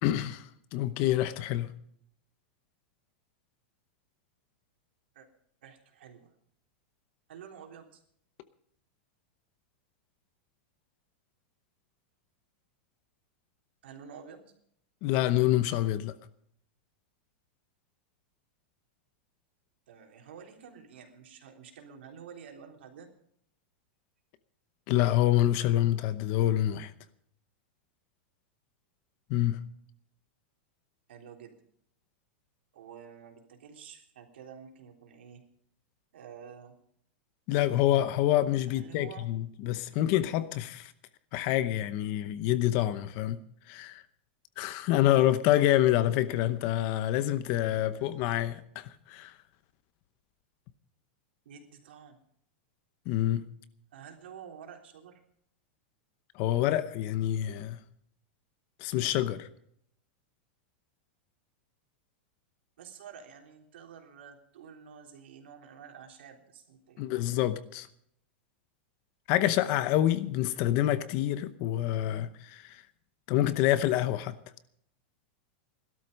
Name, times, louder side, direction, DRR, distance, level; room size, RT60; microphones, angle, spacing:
voice 1, 0.0-1.7 15.0-16.1 24.9-26.9 29.3-29.6 37.5-40.9 41.3-43.4 43.7-44.0 44.6-49.3 53.1-53.4 56.3-57.8 58.8-59.5 67.0-67.9 69.3-72.8 73.3-74.3, left 13 dB, 35° left, 0.8 m, -27 dB
voice 2, 5.6-6.3 7.3-8.0 13.8-14.5 19.9-23.1 31.1-31.6 32.7-35.4 36.1-36.7 38.7-39.3 47.5-48.0 51.5-52.2 53.9-55.2 62.8-67.1, right 7 dB, 80° right, 3.5 m, -49 dB
17.0 x 12.5 x 5.3 m
supercardioid pair, 175°, 6 cm